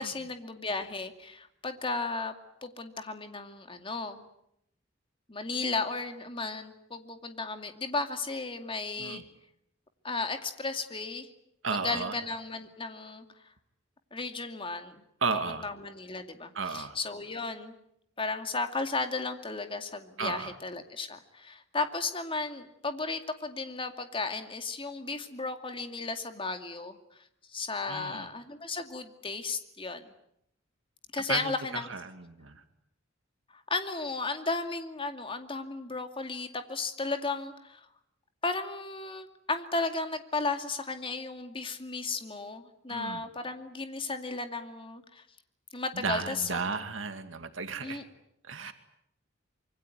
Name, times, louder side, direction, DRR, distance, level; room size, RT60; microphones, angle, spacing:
voice 1, 0.0-2.3 2.6-4.2 5.3-9.2 10.0-11.3 11.8-13.2 14.1-15.0 15.5-17.7 18.2-27.0 27.5-30.1 31.1-31.9 33.7-37.8 38.4-45.2 45.7-46.8 47.8-48.0 48.6-48.7, left 3 dB, 25° left, 7 dB, 2.4 m, -34 dB
voice 2, 11.6-12.2 15.2-15.7 16.5-17.0 20.2-20.6 27.9-28.3 31.3-32.6 42.9-43.2 45.9-48.0 48.4-48.7, right 4 dB, 75° right, 8 dB, 2.2 m, -34 dB
26.0 x 23.5 x 9.3 m, 0.77 s
head